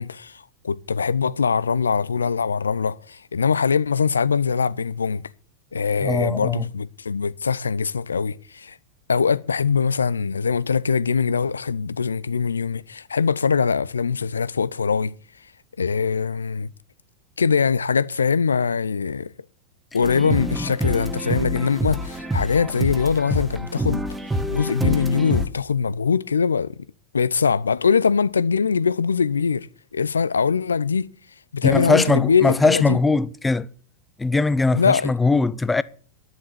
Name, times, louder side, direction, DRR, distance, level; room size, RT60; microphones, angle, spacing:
voice 1, 0.0-5.2 5.7-8.8 9.1-15.1 15.8-16.7 17.4-19.3 19.9-24.0 24.5-26.7 27.1-29.7 29.9-31.1 31.5-33.0 34.7-35.1, left 6 dB, 75° left, 0.5 m, -22 dB
voice 2, 6.0-6.7 20.6-20.7 31.6-33.7 34.2-35.8, left 3 dB, 10° left, 0.5 m, -20 dB
sound 1, 20.0-25.5, equal, 5° right, 1.2 m, -27 dB
11.0 x 7.2 x 8.0 m
figure-of-eight pair, 90°, 0 cm